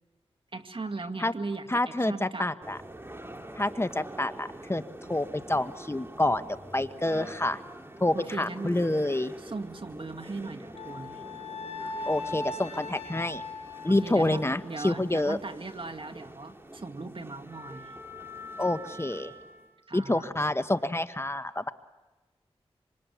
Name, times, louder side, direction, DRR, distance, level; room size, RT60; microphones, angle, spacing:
voice 1, 0.5-2.5 8.1-8.8 9.4-11.2 13.9-17.9 19.9-20.3, right 3 dB, 50° right, 7 dB, 2.1 m, -38 dB
voice 2, 1.7-2.8 3.6-4.8 5.1-7.6 8.0-9.3 12.0-13.4 13.8-15.4 18.6-19.3 19.9-21.7, left 1 dB, 25° left, 11 dB, 1.2 m, -28 dB
sound 1, 2.6-19.8, right 1 dB, 20° right, 2.7 m, -45 dB
Wind instrument woodwind instrument, 10.7-15.1, left 3 dB, 75° left, 3.2 m, -39 dB
27.0 x 26.0 x 8.6 m, 1.1 s
cardioid pair, 45°, 11 cm